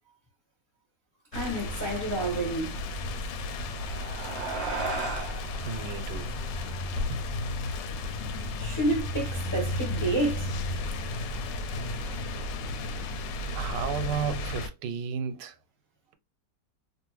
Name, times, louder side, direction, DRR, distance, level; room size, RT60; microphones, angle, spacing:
sound 1, 1.3-14.7, left 2 dB, 90° left, 1.2 m, -33 dB
voice 1, 1.3-2.8 8.6-10.5 12.0-12.2, right 2 dB, 15° left, 0.6 m, -29 dB
sound 2, 3.5-8.2, right 3 dB, 70° right, 0.5 m, -37 dB
voice 2, 5.7-6.3 7.1-7.2 13.5-15.5, right 7 dB, 85° right, 1.2 m, -33 dB
2.7 x 2.5 x 3.0 m
omnidirectional pair, 1.9 m